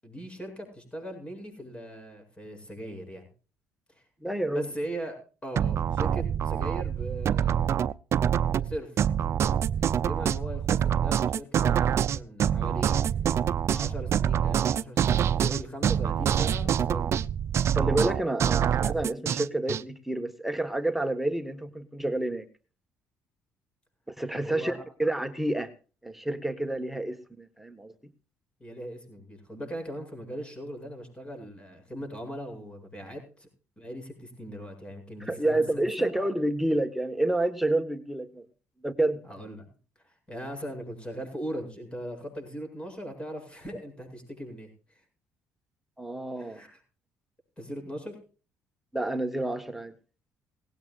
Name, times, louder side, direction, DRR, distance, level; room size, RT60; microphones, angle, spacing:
voice 1, 0.0-3.3 3.9-4.0 4.5-7.7 8.4-9.0 9.7-13.0 13.7-17.2 24.4-24.8 28.6-33.5 33.8-36.1 39.2-39.7 40.0-45.0 46.4-46.8 47.6-48.2, equal, 20° left, 5 dB, 7.9 m, -39 dB
voice 2, 4.2-4.7 17.7-22.5 24.1-25.7 26.0-27.9 35.2-38.4 38.8-39.2 46.0-46.6 48.9-49.9, right 1 dB, 5° right, 8 dB, 1.4 m, -29 dB
sound 1, 5.6-19.8, right 9 dB, 55° right, 0.6 m, -25 dB
19.0 x 16.5 x 2.5 m, 0.36 s
cardioid pair, 90°, 6 cm